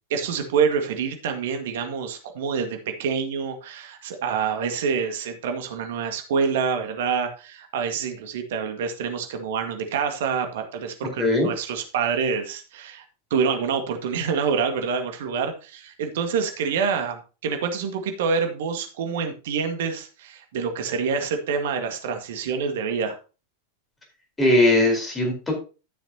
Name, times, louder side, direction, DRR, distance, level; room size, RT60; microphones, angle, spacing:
voice 1, 0.1-13.0 13.3-23.2, right 6 dB, 55° right, 6 dB, 1.8 m, -27 dB
voice 2, 11.2-11.5 24.4-25.5, left 1 dB, 10° left, 1 dB, 4.4 m, -19 dB
13.0 x 7.1 x 2.9 m, 0.32 s
figure-of-eight pair, 90°, 0 cm